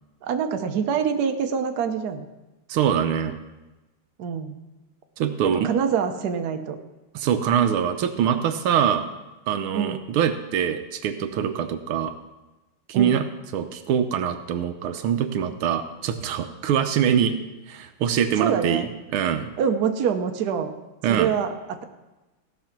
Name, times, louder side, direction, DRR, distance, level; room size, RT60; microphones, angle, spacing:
voice 1, 0.2-2.2 4.2-4.6 5.4-6.8 9.7-10.0 12.9-13.2 18.4-18.9 19.6-20.7 21.1-21.8, right 7 dB, 60° right, 6 dB, 1.3 m, -25 dB
voice 2, 2.7-3.4 5.2-5.7 7.2-9.1 9.5-12.1 12.9-13.3 13.5-17.3 17.7-19.5 21.0-21.3, right 8 dB, 80° right, 9 dB, 1.7 m, -24 dB
16.5 x 6.1 x 5.9 m, 1.1 s
omnidirectional pair, 2.3 m